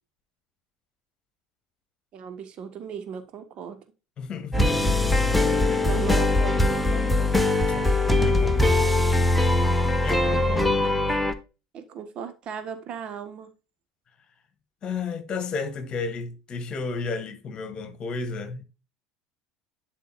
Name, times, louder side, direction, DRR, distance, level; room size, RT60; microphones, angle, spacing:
voice 1, 2.1-3.8 5.8-7.4 11.7-13.5, right 8 dB, 45° right, 1.4 m, -36 dB
voice 2, 4.2-5.2 5.6-6.0 7.7-8.9 10.0-10.9 14.8-18.6, left 4 dB, 35° left, 1.7 m, -33 dB
sound 1, 4.5-11.3, left 2 dB, ahead, 1.1 m, -21 dB
11.5 x 4.9 x 2.5 m
figure-of-eight pair, 70°, 2 cm